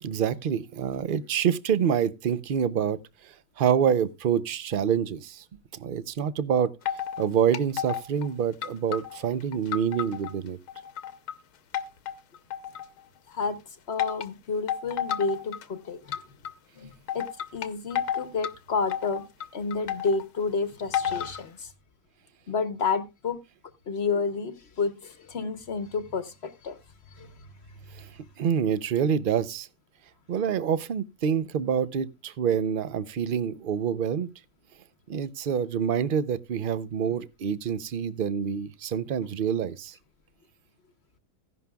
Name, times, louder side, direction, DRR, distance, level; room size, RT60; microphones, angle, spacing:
voice 1, 0.0-3.0 3.2-5.4 5.7-6.7 7.2-10.6 27.9-28.1 28.4-29.7 30.3-34.3 35.1-39.9, right 8 dB, 60° right, 0.5 m, -27 dB
sound 1, 6.9-7.3 7.5-8.3 8.6-10.3 10.7-11.3 11.7-13.0 14.0-14.3 14.7-15.6 16.1-16.5 17.1-18.5 18.9-20.2 20.9-21.4, left 9 dB, 75° left, 1.3 m, -31 dB
voice 2, 13.3-13.6 13.9-16.2 16.8-17.3 17.5-19.2 19.5-21.7 22.5-23.4 23.9-26.8 27.2-27.3, left 4 dB, 50° left, 1.0 m, -30 dB
15.5 x 11.0 x 2.3 m
omnidirectional pair, 1.7 m